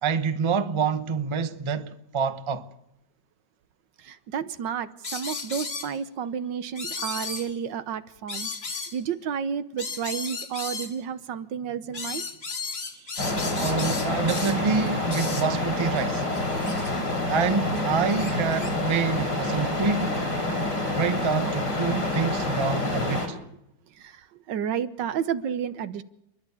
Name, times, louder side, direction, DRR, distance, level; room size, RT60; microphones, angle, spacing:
voice 1, 0.0-2.7 13.6-16.3 17.3-20.3 21.0-23.4, right 5 dB, 20° right, 0.8 m, -27 dB
voice 2, 4.0-12.2 24.0-26.0, right 8 dB, 75° right, 1.6 m, -31 dB
sound 1, 5.0-6.0 6.8-7.6 8.3-9.0 9.8-11.0 11.9-14.6 15.1-15.5 16.0-16.1 16.3-17.0 17.8-18.7, left 4 dB, 35° left, 1.9 m, -35 dB
sound 2, 13.2-23.3, left 2 dB, 75° left, 4.2 m, -27 dB
30.0 x 11.5 x 8.5 m
omnidirectional pair, 2.0 m